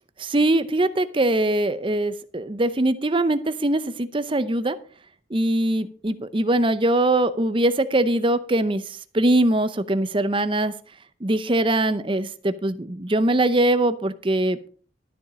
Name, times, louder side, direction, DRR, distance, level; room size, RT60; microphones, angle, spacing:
voice 1, 0.2-4.8 5.3-10.7 11.2-14.7, right 1 dB, 25° right, 13 dB, 0.7 m, -22 dB
12.5 x 7.1 x 5.1 m, 0.44 s
head